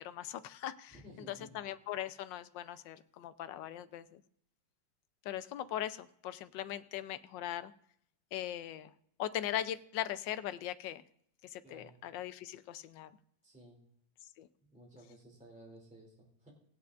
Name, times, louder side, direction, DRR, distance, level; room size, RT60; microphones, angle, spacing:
voice 1, 0.0-1.0 1.3-4.2 5.2-7.7 8.3-8.9 9.2-11.0 11.5-13.1 14.4-14.5, left 12 dB, 80° left, 13 dB, 1.3 m, -40 dB
voice 2, 0.9-1.5 11.6-12.0 13.4-13.8 14.6-16.5, right 1 dB, 5° right, -2 dB, 2.8 m, -55 dB
19.5 x 8.2 x 2.5 m, 0.70 s
omnidirectional pair, 2.0 m